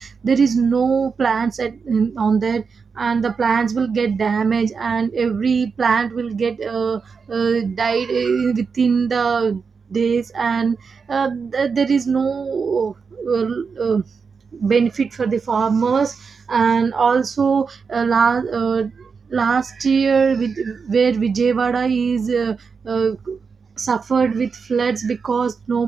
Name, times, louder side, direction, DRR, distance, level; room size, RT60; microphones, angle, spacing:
voice 1, 0.0-9.6 9.9-14.2 14.5-23.4 23.8-25.8, right 5 dB, 40° right, 5.7 m, -20 dB
cardioid pair, 90°, 0 cm